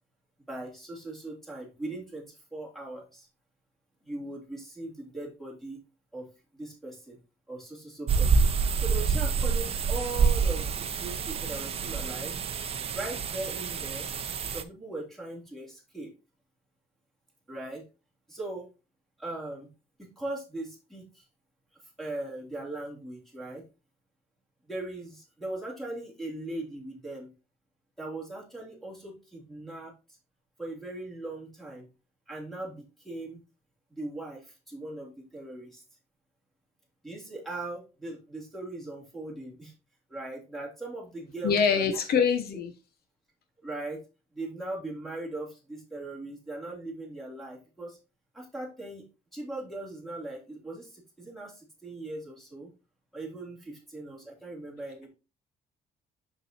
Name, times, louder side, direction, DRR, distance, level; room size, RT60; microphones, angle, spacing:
voice 1, 0.5-3.3 4.0-5.8 6.1-7.2 7.5-12.4 12.9-14.1 14.5-16.1 17.5-17.8 18.3-18.7 19.2-19.7 20.0-21.2 22.0-23.6 24.7-27.3 28.0-30.2 30.6-31.9 32.3-33.4 33.9-35.8 37.0-39.7 40.1-42.0 43.6-44.0 44.3-48.0 48.3-49.0 49.3-52.7 53.1-55.1, right 2 dB, ahead, 3.0 m, -39 dB
sound 1, 8.1-14.6, right 5 dB, 35° right, 0.7 m, -27 dB
voice 2, 41.4-42.7, left 6 dB, 65° left, 0.9 m, -24 dB
6.9 x 6.8 x 2.9 m
cardioid pair, 155°, 17 cm